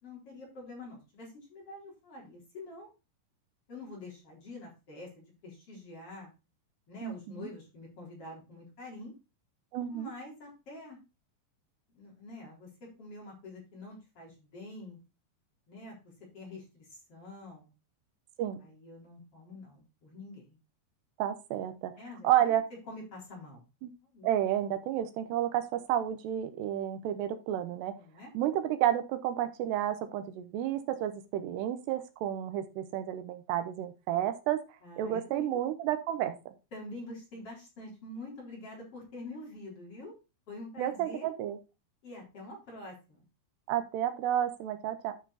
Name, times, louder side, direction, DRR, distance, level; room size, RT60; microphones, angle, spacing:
voice 1, 0.0-2.9 3.7-6.3 6.9-9.1 9.9-11.0 11.9-12.7 13.0-15.0 15.7-17.7 18.6-20.6 22.0-22.5 22.9-23.6 24.0-24.3 28.0-28.3 34.8-35.5 36.7-40.1 40.5-41.3 42.0-43.2, left 2 dB, 35° left, -3 dB, 4.5 m, -46 dB
voice 2, 7.0-7.5 9.7-10.1 18.4-18.7 21.2-21.9 22.2-22.6 23.8-23.9 24.2-27.9 28.3-34.6 35.0-36.4 40.8-41.6 43.7-45.1, right 11 dB, 80° right, 9 dB, 2.9 m, -31 dB
11.0 x 5.9 x 4.2 m, 0.28 s
omnidirectional pair, 4.9 m